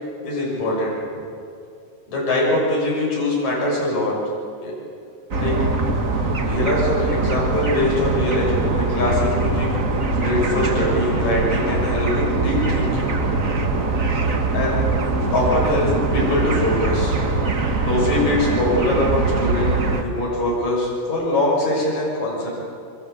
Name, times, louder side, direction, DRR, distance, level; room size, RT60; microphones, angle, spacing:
voice 1, 0.2-1.0 2.1-4.1 4.6-4.7 5.4-5.5 6.4-9.7 10.1-13.1 14.5-14.8 15.3-17.2 17.8-22.5, left 1 dB, 55° left, -4 dB, 7.9 m, -22 dB
sound 1, 5.3-20.0, right 3 dB, 35° right, 1.4 m, -22 dB
28.0 x 24.0 x 8.2 m, 2.5 s
omnidirectional pair, 4.0 m